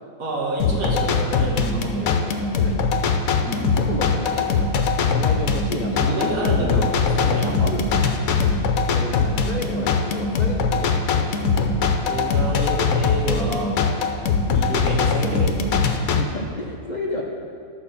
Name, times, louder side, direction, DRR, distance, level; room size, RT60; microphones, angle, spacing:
voice 1, 0.2-2.2 3.4-3.7 5.9-7.5 12.0-13.7 14.5-15.6, right 1 dB, 65° right, -3 dB, 2.1 m, -28 dB
sound 1, 0.6-16.2, left 4 dB, 70° left, 1.1 m, -21 dB
voice 2, 2.0-2.9 3.4-6.2 7.2-8.0 8.9-10.9 11.2-11.4 16.1-17.2, left 2 dB, 40° left, -2 dB, 0.7 m, -32 dB
11.5 x 4.8 x 7.0 m, 2.2 s
omnidirectional pair, 1.6 m